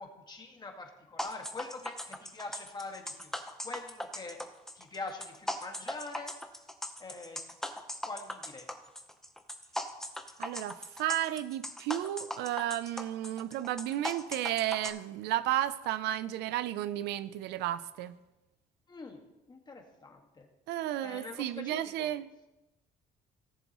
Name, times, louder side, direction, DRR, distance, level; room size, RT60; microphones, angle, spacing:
voice 1, 0.0-3.3 3.6-4.4 4.7-6.3 7.0-7.5 8.0-8.7 18.9-20.5 21.0-22.1, left 3 dB, 25° left, 3 dB, 1.7 m, -44 dB
sound 1, 1.2-14.9, left 1 dB, 5° left, 0.9 m, -39 dB
voice 2, 10.4-18.2 20.7-22.3, right 13 dB, 80° right, 15 dB, 0.5 m, -33 dB
17.5 x 7.2 x 3.0 m, 1.0 s
cardioid pair, 110°, 17 cm